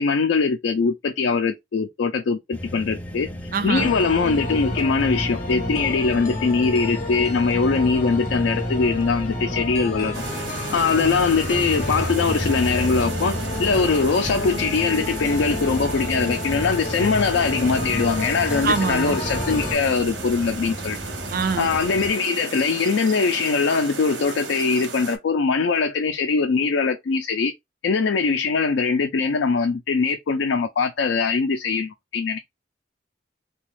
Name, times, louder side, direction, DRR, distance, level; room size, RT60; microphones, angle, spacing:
voice 1, 0.0-3.3 3.6-10.2 10.7-21.0 21.6-27.5 27.8-32.4, left 4 dB, 80° left, 0.4 m, -22 dB
sound 1, 2.5-22.1, left 1 dB, 10° left, 0.3 m, -34 dB
voice 2, 3.5-3.9 18.6-19.2 21.3-21.7, right 5 dB, 50° right, 0.5 m, -24 dB
sound 2, 3.8-19.8, left 1 dB, 40° left, 0.6 m, -30 dB
sound 3, 10.1-25.2, right 4 dB, 90° right, 0.9 m, -35 dB
3.9 x 2.2 x 3.0 m
head